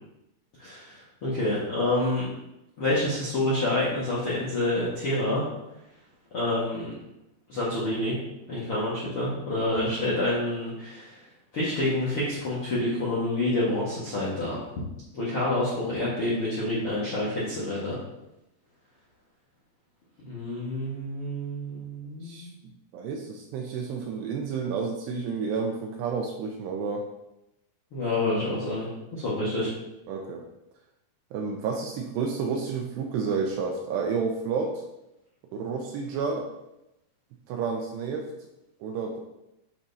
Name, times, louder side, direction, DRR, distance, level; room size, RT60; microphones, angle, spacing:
voice 1, 0.6-2.2 2.8-5.4 6.3-6.9 7.5-8.1 8.5-11.2 11.5-14.6 15.1-18.0 20.2-22.6 27.9-29.7, left 1 dB, 80° left, -8 dB, 1.2 m, -28 dB
voice 2, 22.9-27.1 30.1-30.4 31.3-34.8 35.5-36.5 37.5-38.3 38.8-39.2, right 5 dB, 80° right, 2 dB, 2.6 m, -30 dB
8.7 x 5.8 x 2.7 m, 0.88 s
omnidirectional pair, 5.2 m